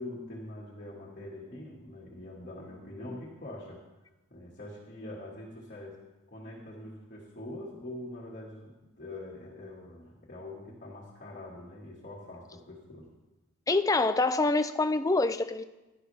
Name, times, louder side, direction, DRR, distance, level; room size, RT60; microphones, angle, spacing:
voice 1, 0.0-3.8 4.3-6.0 6.3-13.1, left 1 dB, 35° left, -5 dB, 2.2 m, -44 dB
voice 2, 13.7-15.6, left 3 dB, 15° left, 10 dB, 0.4 m, -26 dB
16.0 x 11.5 x 3.6 m, 1.1 s
head